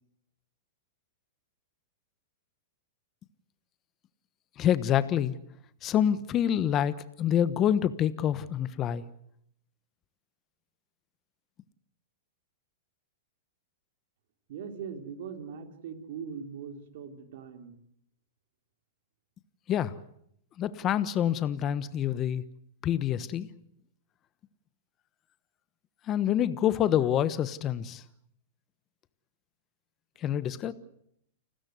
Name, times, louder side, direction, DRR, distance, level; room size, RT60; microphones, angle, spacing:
voice 1, 4.6-5.3 5.8-9.0 19.7-20.0 20.6-22.4 22.8-23.5 26.1-28.0 30.2-30.7, left 10 dB, 30° left, 15 dB, 1.2 m, -27 dB
voice 2, 14.5-17.8 30.7-30.8, right 6 dB, 65° right, 6 dB, 3.8 m, -41 dB
29.5 x 13.0 x 9.6 m, 0.73 s
hypercardioid pair, 130°, 0 cm